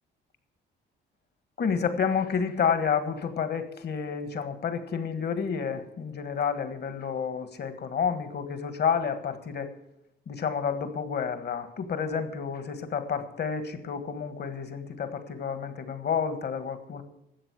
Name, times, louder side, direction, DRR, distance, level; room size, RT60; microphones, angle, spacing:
voice 1, 1.6-9.7 10.3-17.0, left 6 dB, 55° left, 10 dB, 1.6 m, -30 dB
12.5 x 7.9 x 8.2 m, 0.80 s
cardioid pair, 90°, 20 cm